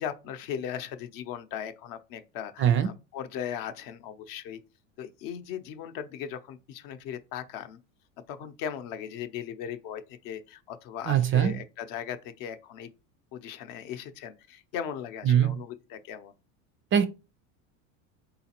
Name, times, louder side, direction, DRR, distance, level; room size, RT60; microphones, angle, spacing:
voice 1, 0.0-4.6 5.0-7.8 8.3-12.9 13.3-16.4, left 9 dB, 55° left, 0.7 m, -38 dB
voice 2, 2.6-2.9 11.1-11.5 15.3-15.6 16.9-17.1, right 9 dB, 30° right, 0.4 m, -22 dB
3.9 x 3.9 x 2.9 m
supercardioid pair, 115°, 39 cm